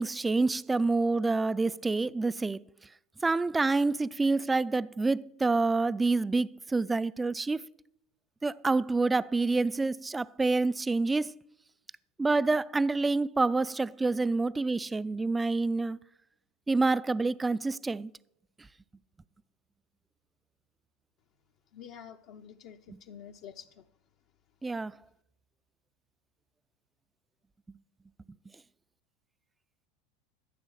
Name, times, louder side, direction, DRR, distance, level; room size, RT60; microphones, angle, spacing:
voice 1, 0.0-2.6 3.2-7.6 8.4-11.3 12.2-16.0 16.7-18.1 22.9-23.0 24.6-25.0, right 3 dB, 15° right, 0.3 m, -27 dB
voice 2, 21.7-23.8, left 8 dB, 60° left, 0.7 m, -48 dB
13.5 x 6.9 x 6.4 m
hypercardioid pair, 90°, 0 cm